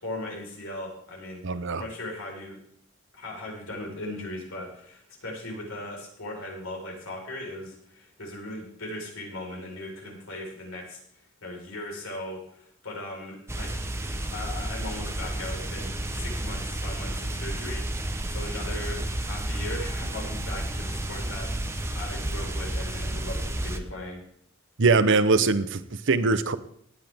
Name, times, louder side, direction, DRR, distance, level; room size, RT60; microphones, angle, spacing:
voice 1, 0.0-2.6 3.1-13.7 14.3-24.2, left 1 dB, 80° left, -1 dB, 4.7 m, -38 dB
voice 2, 1.4-1.8 24.8-26.6, right 4 dB, 65° right, 12 dB, 0.8 m, -22 dB
sound 1, 13.5-23.8, right 1 dB, 15° right, 0.9 m, -31 dB
18.0 x 10.0 x 3.6 m, 0.66 s
head